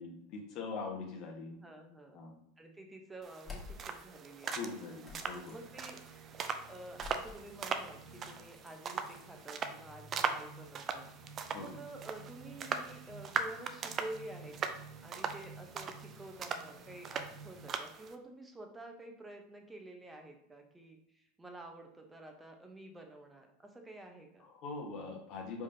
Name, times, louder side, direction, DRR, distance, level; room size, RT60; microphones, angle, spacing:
voice 1, 0.0-1.6 2.1-2.4 4.4-5.5 11.5-11.8 24.4-25.6, left 4 dB, 50° left, 1 dB, 1.2 m, -42 dB
voice 2, 1.6-2.2 2.6-4.6 5.5-6.0 6.7-11.1 11.6-14.8 15.0-24.4, right 1 dB, 10° right, 3 dB, 0.9 m, -50 dB
sound 1, 3.2-18.1, right 6 dB, 35° right, 0.5 m, -40 dB
sound 2, 3.4-4.0 5.0-6.1 6.9-9.3, left 4 dB, 20° left, 1.6 m, -51 dB
sound 3, 5.4-17.7, right 4 dB, 75° right, 1.3 m, -55 dB
4.9 x 3.6 x 2.8 m, 0.78 s
hypercardioid pair, 85°, 0 cm